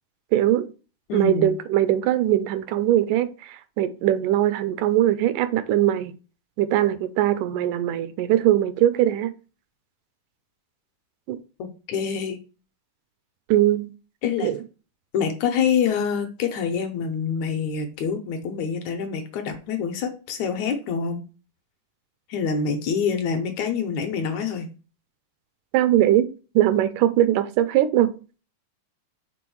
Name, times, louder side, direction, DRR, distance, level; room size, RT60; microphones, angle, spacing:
voice 1, 0.3-0.7 1.1-6.1 6.6-9.3 11.3-11.4 13.5-13.9 14.4-14.6 25.7-26.3 26.6-28.1, right 12 dB, 85° right, 2.1 m, -21 dB
voice 2, 1.1-1.5 11.6-12.4 14.2-14.5 15.1-21.2 22.3-24.7, left 6 dB, 75° left, 1.9 m, -26 dB
6.1 x 3.6 x 4.6 m
omnidirectional pair, 3.7 m